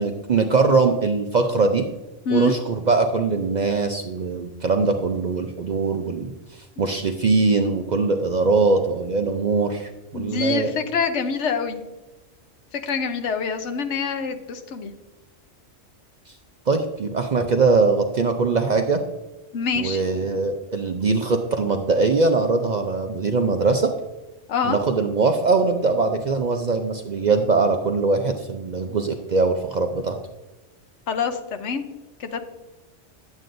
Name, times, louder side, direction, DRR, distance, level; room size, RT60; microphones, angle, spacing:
voice 1, 0.0-1.8 2.3-6.3 6.6-10.7 16.7-19.0 19.8-23.9 24.6-30.2, right 4 dB, 50° right, 5 dB, 0.5 m, -21 dB
voice 2, 10.1-11.8 12.7-14.9 19.5-20.0 24.5-24.8 31.1-31.8 32.2-32.5, left 5 dB, 75° left, 7 dB, 1.1 m, -25 dB
9.2 x 8.2 x 2.6 m, 1.1 s
omnidirectional pair, 1.2 m